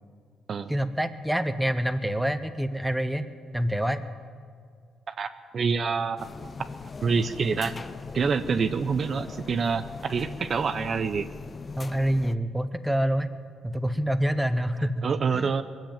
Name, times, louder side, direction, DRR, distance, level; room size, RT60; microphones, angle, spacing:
voice 1, 0.7-3.2 3.5-4.1 11.8-13.3 13.6-15.1 15.3-15.5, equal, 5° right, 9 dB, 0.9 m, -26 dB
voice 2, 5.5-6.3 7.0-7.7 8.1-11.3 15.0-15.6, right 5 dB, 50° right, 10 dB, 0.7 m, -26 dB
sound 1, 6.2-12.3, left 4 dB, 35° left, 0.4 m, -40 dB
21.0 x 7.5 x 8.9 m, 2.1 s
cardioid pair, 90°, 0 cm